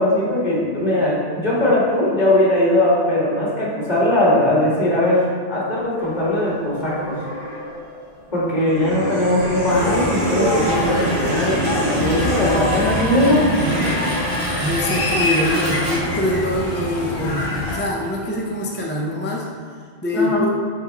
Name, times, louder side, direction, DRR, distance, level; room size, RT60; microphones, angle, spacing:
voice 1, 0.0-5.2 5.5-7.2 8.3-13.4 20.1-20.4, left 1 dB, 45° left, -6 dB, 1.8 m, -19 dB
sound 1, 6.0-16.5, equal, 55° right, 1.8 m, -30 dB
sound 2, 8.7-14.1, right 1 dB, 90° right, 1.4 m, -26 dB
sound 3, 9.7-17.8, left 1 dB, 60° left, 1.1 m, -25 dB
voice 2, 14.6-19.5 20.0-20.5, left 1 dB, 15° left, -2 dB, 0.4 m, -24 dB
6.6 x 4.3 x 3.9 m, 2.1 s
omnidirectional pair, 1.1 m